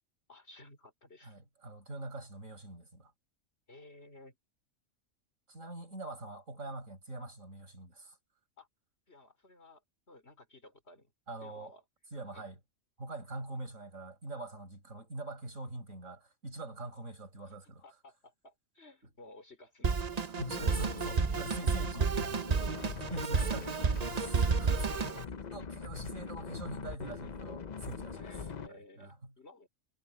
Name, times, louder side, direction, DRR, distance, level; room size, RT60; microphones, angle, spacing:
voice 1, 0.3-1.4 3.7-4.4 8.6-8.7 9.1-11.1 11.4-11.8 12.3-12.4 17.5-17.6 17.8-20.2 20.5-20.7 21.9-23.3 24.7-25.3 28.1-29.7, left 2 dB, 55° left, 5.1 m, -55 dB
voice 2, 1.2-3.1 5.5-8.2 11.3-11.7 12.1-12.6 13.0-17.8 20.4-22.4 23.1-25.2 25.5-28.2 28.7-29.3, right 2 dB, 90° right, 6.5 m, -44 dB
Drum kit, 19.8-25.2, right 5 dB, 35° right, 0.8 m, -31 dB
sound 1, 20.4-28.7, left 6 dB, 40° left, 0.8 m, -43 dB
omnidirectional pair, 1.3 m